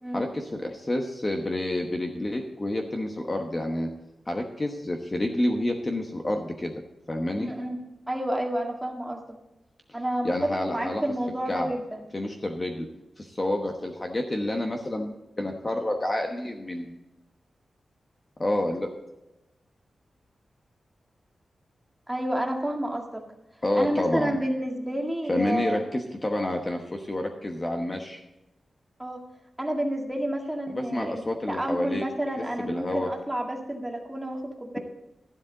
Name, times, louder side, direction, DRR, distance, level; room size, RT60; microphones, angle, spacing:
voice 1, 0.1-3.9 4.3-6.7 7.1-7.5 10.2-11.0 11.5-11.7 12.1-12.9 13.2-16.9 18.4-18.9 23.6-24.4 25.3-28.2 30.7-32.0 32.4-33.1, left 1 dB, 20° left, 3 dB, 1.1 m, -29 dB
voice 2, 7.4-7.8 8.1-9.4 9.9-10.3 10.6-12.1 22.1-23.2 23.8-25.9 29.0-29.2 29.6-34.8, right 1 dB, 10° right, 1 dB, 1.8 m, -30 dB
12.5 x 11.5 x 4.0 m, 0.99 s
wide cardioid pair, 155°, 0 cm